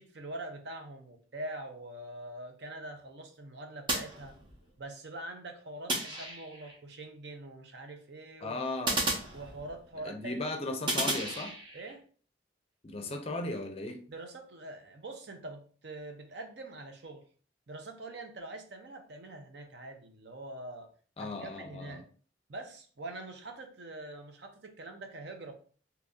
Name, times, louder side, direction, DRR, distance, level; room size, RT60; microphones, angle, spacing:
voice 1, 0.0-4.3 4.8-8.6 9.3-10.5 11.7-12.0 14.1-17.2 17.7-20.9 21.2-22.0 22.5-25.5, right 2 dB, 65° right, 0.6 m, -44 dB
sound 1, 3.9-4.8 5.9-6.8 8.9-10.0 10.9-11.9, right 1 dB, 25° right, 0.7 m, -33 dB
voice 2, 8.4-9.1 10.0-11.6 12.8-14.0 21.2-22.0, left 2 dB, 30° left, 0.5 m, -36 dB
2.9 x 2.6 x 3.5 m
head